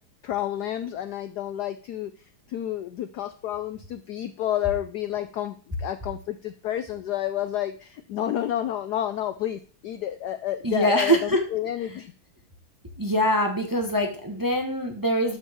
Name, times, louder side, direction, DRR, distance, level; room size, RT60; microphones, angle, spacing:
voice 1, 0.2-2.1 2.5-12.1, left 12 dB, 85° left, 10 dB, 0.9 m, -30 dB
voice 2, 10.6-11.4 13.0-15.4, equal, 15° right, 3 dB, 0.8 m, -23 dB
12.5 x 5.2 x 3.5 m, 0.42 s
omnidirectional pair, 2.4 m